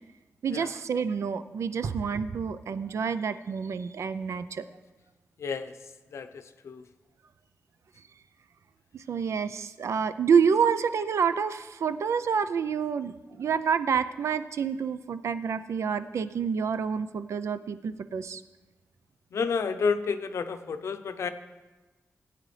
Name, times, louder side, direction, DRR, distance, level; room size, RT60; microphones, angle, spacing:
voice 1, 0.4-4.6 8.9-18.4, right 6 dB, 85° right, 12 dB, 0.5 m, -28 dB
voice 2, 5.4-5.7 6.1-6.8 19.3-21.3, left 5 dB, 80° left, 9 dB, 0.6 m, -30 dB
17.5 x 9.1 x 3.3 m, 1.2 s
wide cardioid pair, 145°, 5 cm